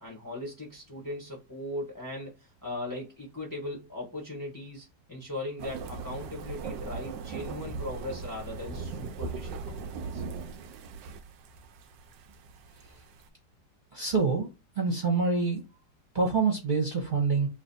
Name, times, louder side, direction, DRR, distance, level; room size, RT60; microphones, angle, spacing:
voice 1, 0.0-10.2, left 1 dB, 15° left, 0.9 m, -39 dB
sound 1, 5.6-13.3, right 4 dB, 90° right, 1.3 m, -39 dB
voice 2, 13.9-14.5 14.7-15.6 16.1-17.5, right 4 dB, 30° right, 1.1 m, -26 dB
3.1 x 3.0 x 4.1 m
omnidirectional pair, 1.9 m